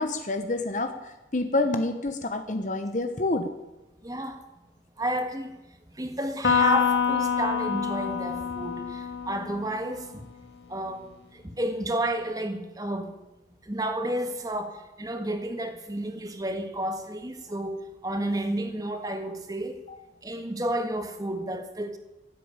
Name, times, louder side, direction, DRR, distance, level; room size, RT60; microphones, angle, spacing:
voice 1, 0.0-3.5 19.9-20.0, left 2 dB, 45° left, 7 dB, 1.0 m, -28 dB
voice 2, 4.0-4.4 5.0-5.5 5.9-10.2 10.7-13.2 13.6-19.8 20.2-22.0, right 1 dB, 20° right, 6 dB, 1.7 m, -31 dB
Electric guitar, 6.4-10.0, left 6 dB, 85° left, 2.3 m, -26 dB
16.0 x 8.4 x 8.9 m, 1.0 s
head